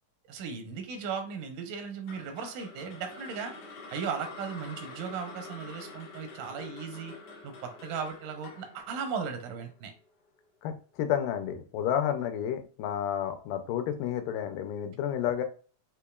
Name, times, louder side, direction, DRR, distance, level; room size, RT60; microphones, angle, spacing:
voice 1, 0.3-3.5 3.9-7.1 7.4-9.9, right 6 dB, 85° right, 6 dB, 2.4 m, -37 dB
sound 1, 2.1-10.3, left 3 dB, 70° left, 1.3 m, -47 dB
voice 2, 10.6-15.4, left 9 dB, 90° left, 7 dB, 2.2 m, -31 dB
6.6 x 2.9 x 2.3 m, 0.39 s
omnidirectional pair, 3.7 m